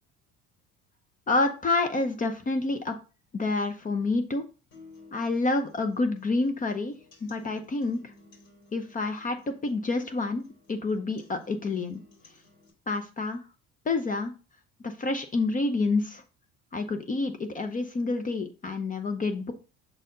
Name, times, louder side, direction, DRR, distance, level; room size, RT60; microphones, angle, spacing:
voice 1, 1.3-3.0 3.3-4.4 5.1-7.0 7.2-8.0 8.7-12.0 12.9-13.4 13.9-14.3 14.8-16.2 16.7-19.5, left 3 dB, 25° left, 7 dB, 0.7 m, -28 dB
sound 1, 4.7-12.7, left 4 dB, 70° left, 3.2 m, -55 dB
6.6 x 4.1 x 3.8 m, 0.33 s
cardioid pair, 120°, 30 cm